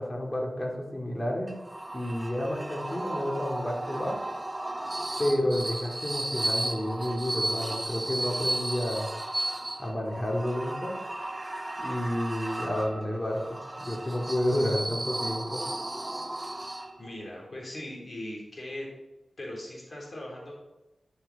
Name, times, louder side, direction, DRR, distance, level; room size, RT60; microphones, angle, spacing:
voice 1, 0.0-1.5 1.9-4.2 5.2-9.1 9.8-10.9 11.8-15.6, left 1 dB, 25° left, -1 dB, 2.7 m, -30 dB
sound 1, 1.5-17.2, right 1 dB, 25° right, 0.9 m, -34 dB
voice 2, 17.0-18.9 19.4-20.5, left 1 dB, 50° left, -3 dB, 3.7 m, -39 dB
10.5 x 6.3 x 4.2 m, 1.0 s
cardioid pair, 50°, 0 cm